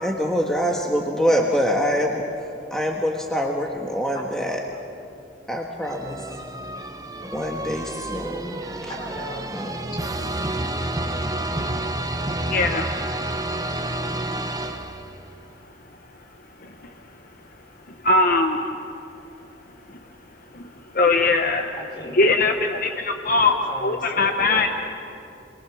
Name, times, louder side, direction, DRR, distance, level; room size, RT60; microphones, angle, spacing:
voice 1, 0.0-4.6 5.5-6.3 7.2-8.6 9.5-9.8, equal, 5° left, -1 dB, 1.4 m, -25 dB
voice 2, 4.1-4.6 8.9-9.4 21.7-22.5 23.2-24.8, equal, 25° left, 0 dB, 4.3 m, -37 dB
sound 1, 5.8-15.3, right 1 dB, 20° right, 1.0 m, -29 dB
voice 3, 12.5-12.8 16.6-16.9 18.0-18.8 20.5-21.8 22.1-23.5 23.8-24.7, left 3 dB, 50° left, 5 dB, 1.0 m, -21 dB
29.0 x 22.5 x 6.2 m, 2.7 s
head